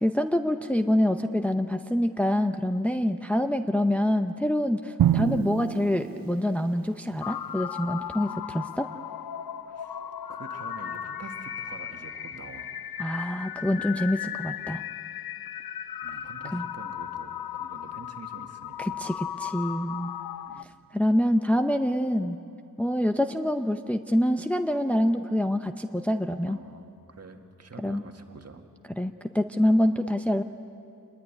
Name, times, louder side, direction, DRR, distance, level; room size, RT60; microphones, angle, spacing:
voice 1, 0.0-8.9 13.0-14.8 16.5-16.6 18.8-20.1 20.9-22.4 22.8-26.6 27.8-28.0 29.0-30.4, left 1 dB, 5° left, 6 dB, 0.6 m, -26 dB
Drum, 5.0-7.0, right 11 dB, 75° right, 0.6 m, -27 dB
sound 1, 7.2-20.6, left 10 dB, 85° left, 0.7 m, -36 dB
voice 2, 9.6-10.0 10.3-12.8 16.0-19.1 19.7-19.9 20.5-20.8 26.4-28.6, right 4 dB, 45° right, 4 dB, 1.8 m, -47 dB
26.5 x 21.0 x 9.9 m, 2.6 s
wide cardioid pair, 145°, 35 cm